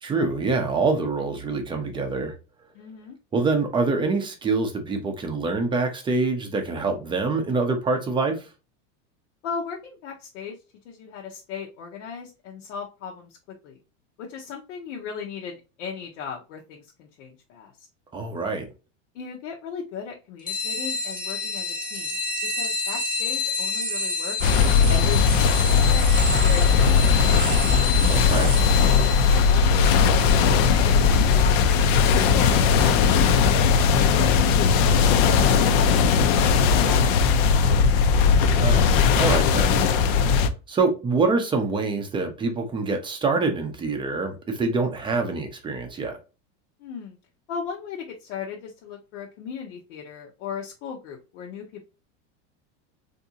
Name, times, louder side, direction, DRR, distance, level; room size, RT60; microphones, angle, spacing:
voice 1, 0.0-2.3 3.3-8.5 18.1-18.7 28.1-28.6 38.5-39.8 40.7-46.2, right 3 dB, 15° right, 0.5 m, -25 dB
voice 2, 2.7-3.2 9.4-10.6 10.8-13.4 13.6-13.8 14.2-17.9 19.1-22.2 22.6-24.6 24.9-27.5 29.3-34.8 35.1-36.3 36.5-37.7 46.8-47.2 47.5-51.8, left 6 dB, 75° left, 0.8 m, -37 dB
sound 1, 20.5-32.6, left 3 dB, 15° left, 0.9 m, -30 dB
sound 2, 24.4-40.5, left 6 dB, 55° left, 0.5 m, -18 dB
3.5 x 2.7 x 2.7 m
supercardioid pair, 145°, 37 cm